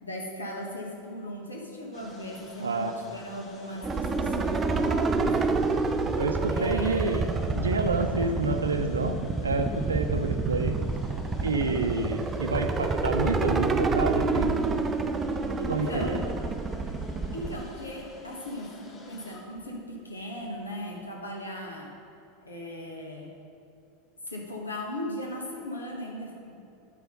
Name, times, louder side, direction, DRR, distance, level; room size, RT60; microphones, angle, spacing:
voice 1, 0.0-5.6 6.5-7.3 15.6-16.2 17.3-21.9 22.4-23.3 24.2-26.6, equal, 80° left, -1 dB, 1.5 m, -37 dB
sound 1, 1.9-21.1, left 3 dB, 30° left, 1.5 m, -48 dB
voice 2, 2.6-2.9 6.2-7.2 7.5-10.8 11.4-14.5 15.7-16.2, right 3 dB, 75° right, 6 dB, 0.6 m, -28 dB
sound 2, 3.8-17.6, right 3 dB, 20° right, 0.5 m, -28 dB
10.0 x 6.0 x 5.3 m, 2.6 s
figure-of-eight pair, 80°, 0 cm